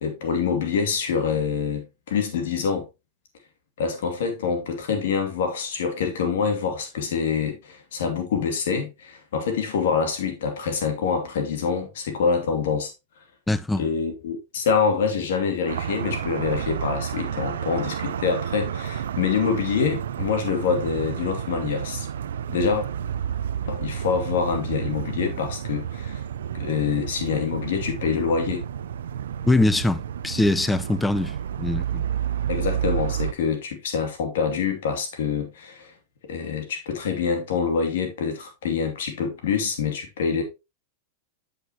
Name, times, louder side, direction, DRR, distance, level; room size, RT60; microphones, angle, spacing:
voice 1, 0.0-2.9 3.8-12.9 13.8-22.1 22.5-22.9 23.7-26.2 26.5-28.7 32.5-35.9 36.3-40.4, left 6 dB, 80° left, 2.4 m, -26 dB
voice 2, 13.5-13.9 29.4-32.1, left 2 dB, 10° left, 0.6 m, -23 dB
sound 1, 15.7-33.3, right 9 dB, 85° right, 0.5 m, -30 dB
8.0 x 6.5 x 2.9 m
hypercardioid pair, 120°, 0 cm